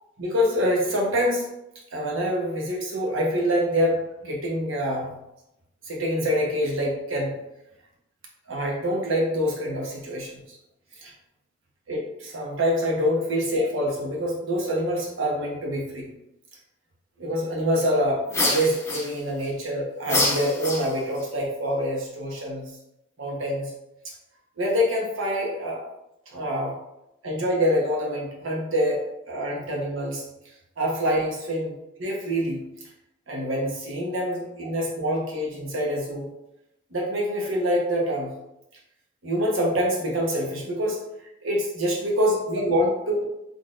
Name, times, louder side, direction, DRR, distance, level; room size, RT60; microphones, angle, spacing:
voice 1, 0.2-1.5 1.9-5.1 5.8-7.4 8.5-10.6 11.0-11.1 11.9-16.1 17.2-22.7 23.2-23.7 24.0-24.1 24.6-25.8 26.3-26.7 27.2-30.2 30.8-32.6 33.3-36.3 36.9-38.3 39.2-41.0 41.4-43.3, equal, 85° right, -2 dB, 1.0 m, -26 dB
sound 1, 18.3-19.5 20.0-21.2, left 2 dB, 15° left, 0.7 m, -26 dB
3.9 x 3.5 x 2.5 m, 0.87 s
head